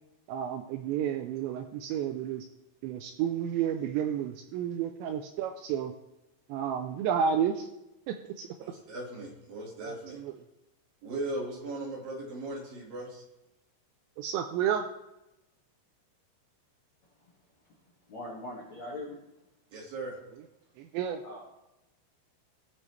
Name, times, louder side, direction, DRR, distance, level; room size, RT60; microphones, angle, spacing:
voice 1, 0.3-2.5 2.8-5.9 6.5-7.6 8.1-8.5 9.9-10.0 14.2-14.9 20.9-21.2, right 8 dB, 85° right, 6 dB, 2.7 m, -31 dB
voice 2, 8.6-10.2 11.0-13.2 19.7-20.1, right 2 dB, 55° right, -2 dB, 3.3 m, -38 dB
voice 3, 18.1-19.2 21.2-21.4, left 1 dB, 55° left, -5 dB, 2.2 m, -40 dB
17.0 x 7.3 x 3.3 m, 0.92 s
omnidirectional pair, 5.5 m